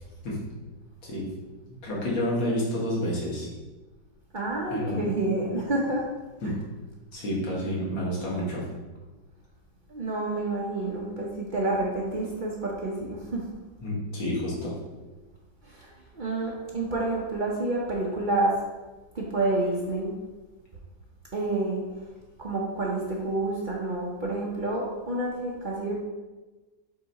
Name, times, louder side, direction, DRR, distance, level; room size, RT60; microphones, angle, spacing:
voice 1, 1.8-3.5 4.7-5.1 6.4-6.5 7.1-8.6 13.8-14.7, equal, 85° left, -5 dB, 2.4 m, -29 dB
voice 2, 4.3-6.1 6.4-6.5 9.9-13.4 15.6-18.6 19.1-20.1 21.3-21.8 22.4-25.9, right 2 dB, 85° right, -4 dB, 0.4 m, -29 dB
8.1 x 2.9 x 4.1 m, 1.2 s
omnidirectional pair, 2.1 m